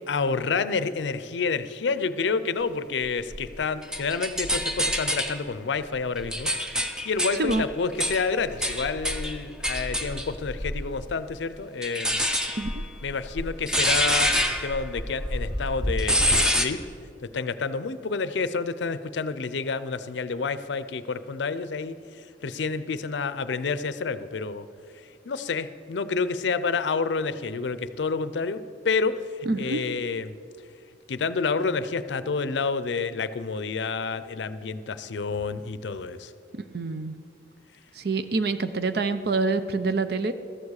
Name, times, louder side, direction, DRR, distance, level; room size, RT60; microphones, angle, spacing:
voice 1, 0.1-12.2 13.0-16.8 17.3-24.7 25.2-30.3 31.1-36.3, left 4 dB, 75° left, 13 dB, 0.5 m, -29 dB
sound 1, 3.3-5.4 5.9-11.0 11.8-16.7, equal, 5° right, 0.6 m, -27 dB
voice 2, 29.5-29.8 36.5-37.1 38.0-40.3, right 3 dB, 60° right, 11 dB, 0.6 m, -26 dB
13.5 x 7.3 x 6.4 m, 2.4 s
head